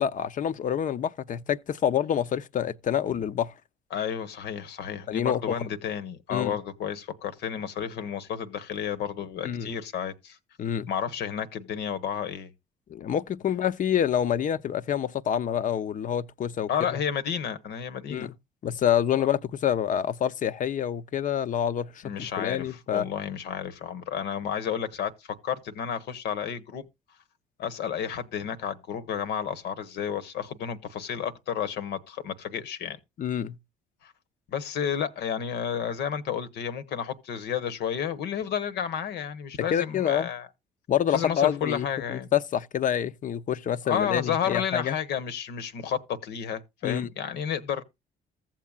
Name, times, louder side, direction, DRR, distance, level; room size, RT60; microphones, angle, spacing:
voice 1, 0.0-3.5 5.1-5.7 6.3-6.6 9.4-9.7 10.6-10.9 12.9-17.0 18.1-18.3 18.6-23.1 33.2-33.6 39.7-40.3 40.9-44.9 46.8-47.1, left 9 dB, 45° left, 0.7 m, -27 dB
voice 2, 3.9-10.4 10.9-12.5 16.7-18.3 22.0-26.8 27.6-33.0 34.0-34.1 34.5-40.5 41.1-42.3 43.8-47.8, left 8 dB, 70° left, 1.0 m, -31 dB
15.0 x 7.4 x 2.3 m
hypercardioid pair, 65°, 18 cm